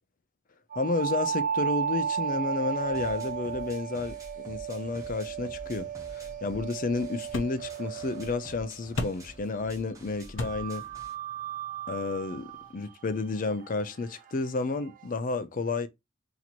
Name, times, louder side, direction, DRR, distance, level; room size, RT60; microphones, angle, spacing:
sound 1, 0.7-9.5 10.4-15.1, right 7 dB, 40° right, 0.5 m, -35 dB
voice 1, 0.8-10.8 11.9-15.9, left 3 dB, 45° left, 0.5 m, -31 dB
sound 2, 2.8-11.1, equal, 15° right, 1.0 m, -49 dB
sound 3, 5.6-12.7, left 2 dB, 65° left, 0.8 m, -42 dB
2.9 x 2.9 x 4.1 m
head